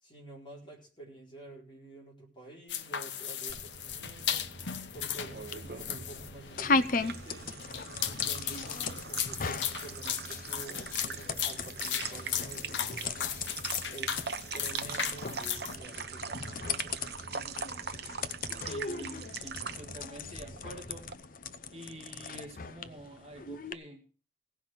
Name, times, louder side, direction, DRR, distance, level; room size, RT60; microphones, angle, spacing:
voice 1, 0.0-4.5 4.9-7.5 8.0-13.3 13.9-14.2 14.5-17.0, right 2 dB, 25° left, -2 dB, 4.5 m, -49 dB
sound 1, 2.7-15.8, left 9 dB, 85° left, 0.9 m, -36 dB
sound 2, 3.5-21.1, right 6 dB, 60° right, 0.9 m, -42 dB
sound 3, 4.2-23.7, left 4 dB, 50° left, 0.7 m, -38 dB
voice 2, 18.6-21.1 21.7-24.0, right 1 dB, 35° right, 1 dB, 2.1 m, -47 dB
17.0 x 5.7 x 7.6 m, 0.39 s
head